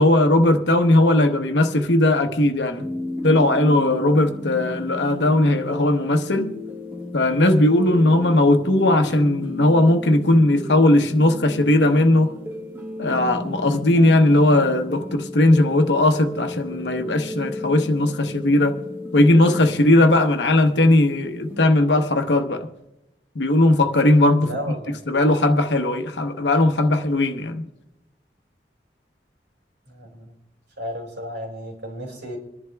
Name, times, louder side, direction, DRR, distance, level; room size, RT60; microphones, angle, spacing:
voice 1, 0.0-2.9 3.2-6.5 7.1-12.3 13.0-18.7 19.1-22.7 23.3-24.5 25.1-27.6, left 1 dB, 85° left, 1.0 m, -18 dB
sound 1, 2.8-21.6, left 2 dB, 10° right, 1.4 m, -34 dB
voice 2, 24.4-24.9 29.9-30.3 30.8-32.4, equal, 90° right, 4.6 m, -33 dB
27.0 x 11.0 x 2.3 m
head